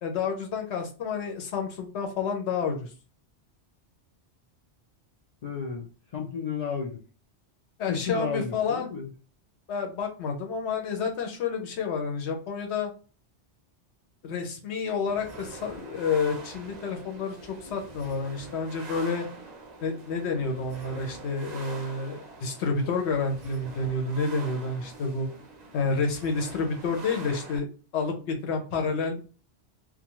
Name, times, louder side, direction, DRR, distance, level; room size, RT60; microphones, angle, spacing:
voice 1, 0.0-2.9 7.8-8.9 9.7-12.9 14.2-19.3 19.8-25.3 25.7-27.7 27.9-29.2, left 4 dB, 75° left, 4 dB, 0.9 m, -29 dB
voice 2, 5.4-5.9 6.1-7.0 7.9-9.1, left 6 dB, 60° left, -1 dB, 0.4 m, -32 dB
sound 1, 15.1-27.6, right 3 dB, 50° right, 0.5 m, -44 dB
2.4 x 2.2 x 2.9 m, 0.36 s
omnidirectional pair, 1.2 m